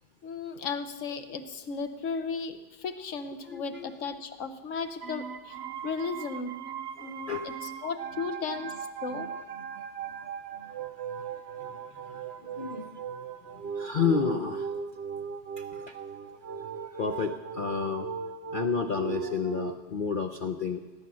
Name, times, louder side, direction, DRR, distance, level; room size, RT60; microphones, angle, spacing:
voice 1, 0.2-5.6 5.8-6.6 7.0-8.7 9.0-9.3, left 5 dB, 50° left, 9 dB, 1.2 m, -35 dB
voice 2, 3.4-3.9 7.0-7.6 12.4-12.9 13.7-14.7 15.6-16.0 16.9-18.1 18.5-20.8, left 6 dB, 70° left, 5 dB, 0.4 m, -31 dB
sound 1, 5.0-19.8, right 6 dB, 65° right, 0.6 m, -38 dB
19.5 x 10.5 x 6.3 m, 1.2 s
omnidirectional pair, 1.9 m